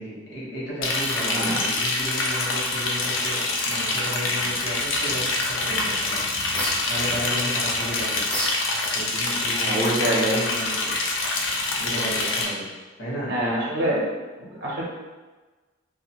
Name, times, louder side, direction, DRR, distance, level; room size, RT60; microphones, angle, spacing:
voice 1, 0.0-6.2 6.9-8.2 8.9-10.9 11.8-12.6 13.0-13.3, equal, 65° left, -7 dB, 1.1 m, -33 dB
Liquid, 0.8-12.4, left 2 dB, 80° left, 0.5 m, -26 dB
voice 2, 1.2-1.6 9.5-10.4 13.3-14.1 14.4-14.8, right 1 dB, 55° right, -4 dB, 0.6 m, -25 dB
sound 1, 6.5-7.6 8.2-9.4, equal, 5° left, 0.4 m, -32 dB
2.5 x 2.4 x 2.8 m, 1.3 s
head